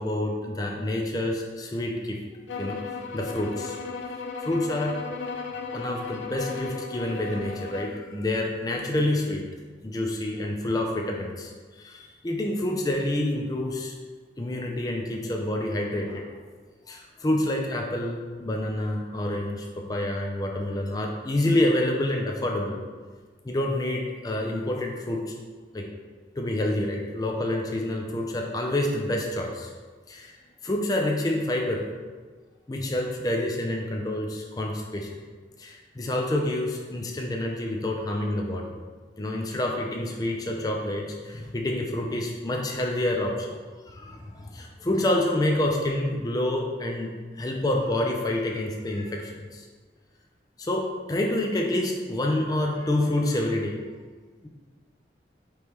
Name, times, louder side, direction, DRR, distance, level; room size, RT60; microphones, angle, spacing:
voice 1, 0.0-2.2 2.6-2.8 3.1-3.8 4.4-4.9 5.7-9.4 9.8-11.5 11.8-13.9 14.4-16.3 16.9-22.8 23.4-25.3 25.7-25.8 26.4-29.7 30.1-30.3 30.6-31.8 32.7-35.1 35.6-38.8 39.2-43.3 43.9-47.1 47.4-49.6 50.6-53.8 54.4-54.5, left 1 dB, 20° left, 1 dB, 0.4 m, -28 dB
sound 1, 2.5-8.0, left 4 dB, 90° left, 0.4 m, -36 dB
5.2 x 3.1 x 2.9 m, 1.4 s
head